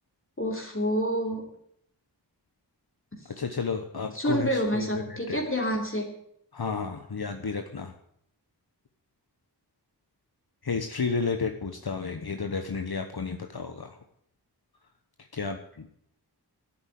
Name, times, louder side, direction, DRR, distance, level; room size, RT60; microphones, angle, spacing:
voice 1, 0.4-1.4 4.1-6.1, equal, 30° left, 0 dB, 3.3 m, -28 dB
voice 2, 3.4-5.4 6.5-7.9 10.6-14.0 15.3-15.9, left 5 dB, 65° left, 6 dB, 1.2 m, -32 dB
11.5 x 9.0 x 9.3 m, 0.72 s
wide cardioid pair, 50°, 41 cm